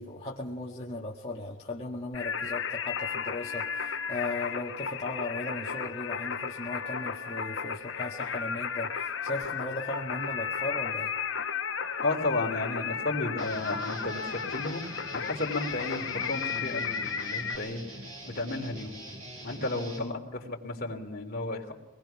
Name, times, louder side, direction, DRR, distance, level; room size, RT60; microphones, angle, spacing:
voice 1, 0.0-11.1 16.2-16.3 20.0-20.1, left 2 dB, 30° left, -4 dB, 1.7 m, -37 dB
Singing, 2.1-17.6, left 6 dB, 65° left, 1.1 m, -34 dB
voice 2, 12.0-17.8 18.3-19.0 19.4-21.7, left 2 dB, 50° left, 1 dB, 3.3 m, -33 dB
Guitar, 13.4-20.1, right 1 dB, 80° right, 7.7 m, -44 dB
23.5 x 20.0 x 5.9 m, 1.0 s
head